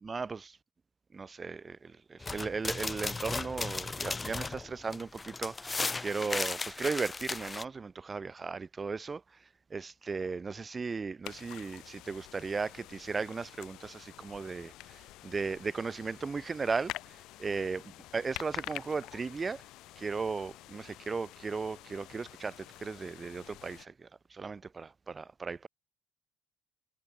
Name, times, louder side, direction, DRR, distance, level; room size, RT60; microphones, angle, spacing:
voice 1, 0.1-0.5 1.1-1.8 2.1-5.5 6.0-9.2 9.7-14.7 15.2-16.9 17.4-17.8 18.1-19.6 20.0-22.5 22.8-23.8 24.4-25.7, right 4 dB, 25° right, 0.6 m, -36 dB
sound 1, 2.2-7.6, left 3 dB, 20° left, 0.8 m, -36 dB
sound 2, 11.2-23.9, left 17 dB, 75° left, 1.2 m, -47 dB
cardioid pair, 115°, 0 cm